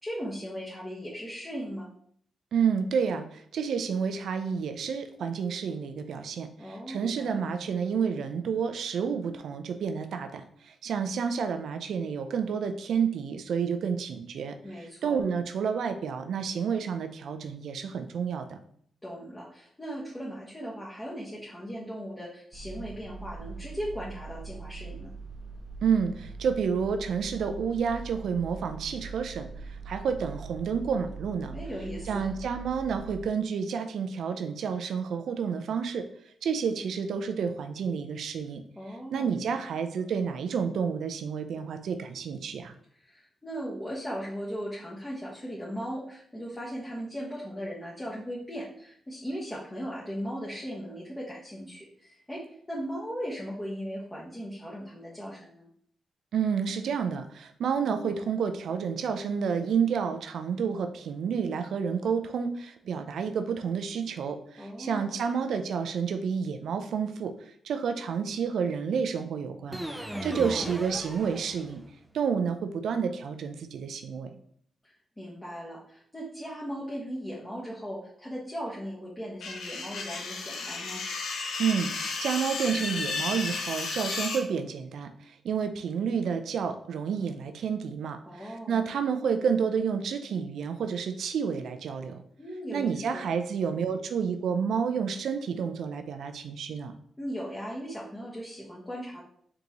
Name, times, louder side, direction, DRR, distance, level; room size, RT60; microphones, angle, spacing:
voice 1, 0.0-1.9 6.6-7.4 14.6-15.2 19.0-25.1 31.5-32.3 38.8-39.7 43.0-52.4 52.7-55.7 64.5-65.4 70.1-70.5 74.8-81.0 88.3-88.9 92.4-93.3 97.2-99.2, equal, 20° left, -6 dB, 1.2 m, -38 dB
voice 2, 2.5-18.6 25.8-29.5 29.9-31.6 32.1-36.0 36.4-38.6 39.1-42.7 56.3-67.3 67.6-69.8 70.2-71.8 72.1-74.3 81.6-85.1 85.4-92.2 92.7-96.9, right 6 dB, 75° right, 8 dB, 0.4 m, -30 dB
sound 1, 22.5-33.3, right 4 dB, 25° right, 1.1 m, -42 dB
sound 2, 69.7-72.0, right 1 dB, 10° right, 0.5 m, -38 dB
sound 3, 79.4-84.4, left 4 dB, 80° left, 0.6 m, -33 dB
3.9 x 3.5 x 2.9 m, 0.64 s
supercardioid pair, 50°, 0 cm